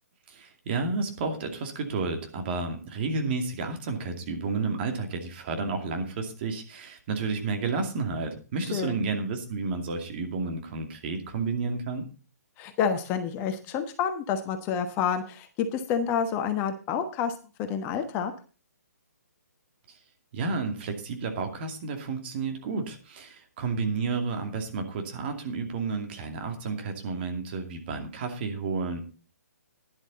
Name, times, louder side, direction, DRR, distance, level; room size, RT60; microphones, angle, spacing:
voice 1, 0.3-12.1 20.3-29.0, right 4 dB, 40° right, 5 dB, 2.4 m, -31 dB
voice 2, 8.7-9.0 12.6-18.3, left 7 dB, 25° left, 7 dB, 1.2 m, -29 dB
12.0 x 10.5 x 4.0 m, 0.35 s
figure-of-eight pair, 135°, 9 cm